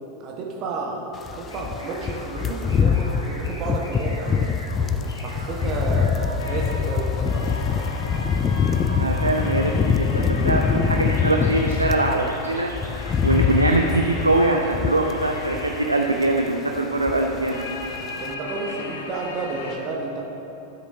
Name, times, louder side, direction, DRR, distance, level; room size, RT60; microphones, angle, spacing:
voice 1, 0.2-4.6 5.2-7.5 18.2-20.3, right 3 dB, 35° right, -1 dB, 1.1 m, -31 dB
sound 1, 1.2-12.2 12.5-15.9 16.2-16.4 16.8-17.6 17.8-18.0, left 6 dB, 25° left, 0.3 m, -24 dB
sound 2, 1.3-9.3 10.3-10.7 11.0-14.7 15.3-16.0, equal, 80° left, 1.8 m, -41 dB
sound 3, 6.4-19.8, left 3 dB, 55° left, 0.9 m, -36 dB
voice 2, 9.0-12.7 13.2-17.6, right 2 dB, 80° right, 2 dB, 0.5 m, -22 dB
12.5 x 7.8 x 2.7 m, 2.9 s
figure-of-eight pair, 90°, 0 cm